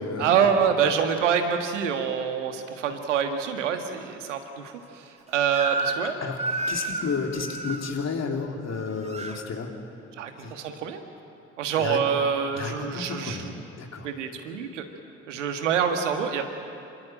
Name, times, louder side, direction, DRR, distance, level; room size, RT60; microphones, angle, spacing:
voice 1, 0.2-5.0 5.3-6.1 10.2-11.0 11.6-13.5 14.0-14.8 15.3-16.5, right 7 dB, 85° right, 6 dB, 1.6 m, -26 dB
Crying sobbing / Screech, 5.5-6.1 6.4-7.9 8.7-9.4, right 2 dB, 20° right, 2.6 m, -31 dB
voice 2, 6.0-6.4 6.7-10.0 10.4-10.5 11.8-12.0 12.5-13.5 13.7-14.1, left 4 dB, 45° left, 2 dB, 3.2 m, -32 dB
26.5 x 14.5 x 9.0 m, 2.7 s
hypercardioid pair, 45°, 36 cm